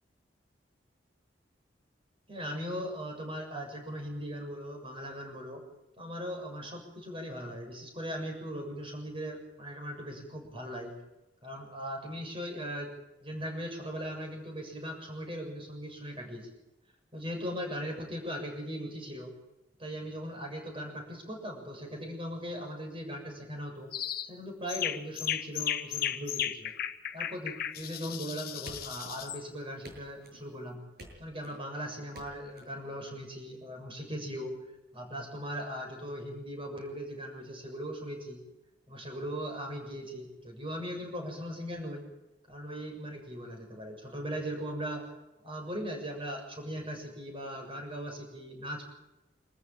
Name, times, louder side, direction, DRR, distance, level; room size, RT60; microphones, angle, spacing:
voice 1, 2.3-5.6 6.0-10.9 11.4-12.9 13.2-16.5 17.1-19.3 19.8-23.9 24.2-26.7 27.1-30.8 31.2-34.6 34.9-38.4 38.9-42.0 42.5-45.1 45.4-48.8, equal, 30° right, 3 dB, 6.9 m, -39 dB
sound 1, 23.9-24.3 24.7-29.4, left 10 dB, 55° left, 1.2 m, -35 dB
sound 2, 28.7-29.4 29.8-30.5 31.0-31.6 32.1-32.6, right 1 dB, 60° right, 7.7 m, -50 dB
26.5 x 14.5 x 8.9 m, 0.97 s
head